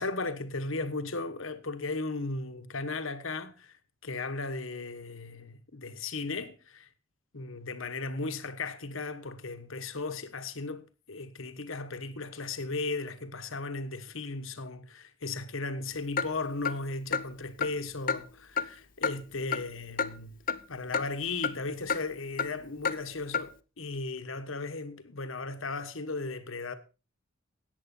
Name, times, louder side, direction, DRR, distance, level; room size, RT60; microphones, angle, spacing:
voice 1, 0.0-3.7 4.0-6.9 7.3-20.3 20.7-26.7, left 3 dB, 70° left, 1.2 m, -36 dB
Clock, 16.2-16.3 16.6-16.8 17.1-17.3 17.6-17.7 18.1-18.2 18.6-18.7 19.0-19.2 19.5-19.6 20.0-20.1 20.5-20.6 20.9-21.0 21.4-21.6 21.9-22.0 22.4-22.5 22.8-23.0 23.3-23.5, left 6 dB, 40° left, 0.6 m, -29 dB
14.0 x 9.3 x 4.2 m
head